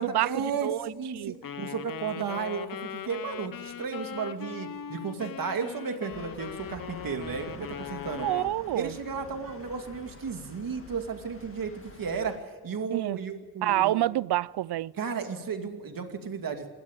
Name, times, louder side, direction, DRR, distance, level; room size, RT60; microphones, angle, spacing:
voice 1, 0.0-8.3 8.7-11.7 12.0-14.0 15.0-16.7, right 5 dB, 60° right, 2.5 m, -34 dB
voice 2, 0.6-1.3 2.2-2.4 8.2-8.9 12.9-13.2 13.6-14.9, right 14 dB, 85° right, 0.6 m, -28 dB
Wind instrument woodwind instrument, 1.4-8.5, left 8 dB, 60° left, 0.9 m, -40 dB
sound 1, 6.1-12.4, left 4 dB, 35° left, 1.9 m, -48 dB
27.0 x 12.0 x 8.9 m
wide cardioid pair, 135°, 39 cm